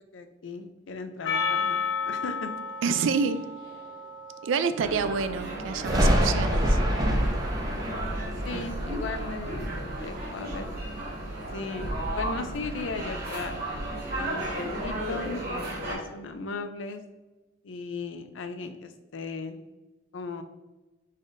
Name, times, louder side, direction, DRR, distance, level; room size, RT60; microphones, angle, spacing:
voice 1, 0.1-2.5 8.5-9.7 10.0-10.7 11.5-15.4 15.7-17.0 17.6-19.6 20.1-20.4, left 3 dB, 85° left, 8 dB, 0.5 m, -37 dB
Percussion, 1.2-5.8, left 5 dB, 65° left, 1.1 m, -33 dB
voice 2, 2.8-3.4 4.4-6.8 8.5-8.6, right 5 dB, 80° right, 12 dB, 0.4 m, -28 dB
sound 1, 4.8-15.9, right 1 dB, 55° right, 1.5 m, -35 dB
Thunder, 5.9-11.3 11.7-13.1 13.4-15.1, equal, 20° right, 0.7 m, -28 dB
5.0 x 4.1 x 2.6 m, 1.1 s
head